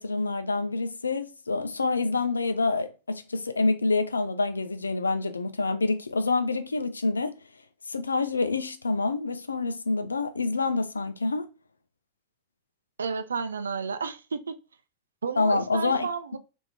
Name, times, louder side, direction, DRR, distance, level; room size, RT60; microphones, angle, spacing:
voice 1, 0.0-7.3 7.9-11.5 15.4-16.1, left 3 dB, 75° left, 0.4 m, -27 dB
voice 2, 13.0-14.6 15.2-16.4, right 5 dB, 70° right, 0.4 m, -31 dB
3.5 x 2.5 x 3.3 m
figure-of-eight pair, 90°, 0 cm